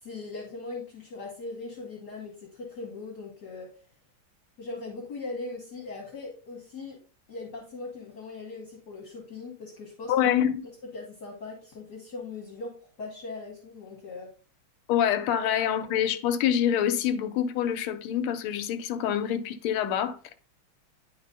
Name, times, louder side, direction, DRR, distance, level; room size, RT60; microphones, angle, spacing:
voice 1, 0.0-3.7 4.6-7.0 7.3-10.1 10.9-14.3, left 3 dB, 55° left, 1.6 m, -40 dB
voice 2, 10.1-10.7 14.9-20.4, left 10 dB, 85° left, 1.5 m, -26 dB
10.0 x 3.9 x 2.6 m
omnidirectional pair, 2.3 m